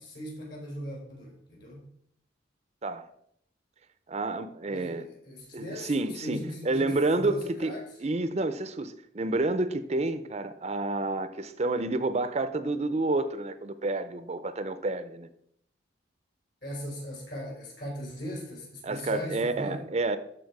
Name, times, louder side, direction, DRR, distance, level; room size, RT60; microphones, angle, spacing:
voice 1, 0.0-1.8 4.7-7.8 16.6-19.8, equal, 65° left, 4.1 m, -39 dB
voice 2, 4.1-5.1 5.5-7.7 8.0-15.3 18.8-20.2, right 2 dB, 35° right, 0.5 m, -29 dB
13.0 x 4.4 x 4.7 m
head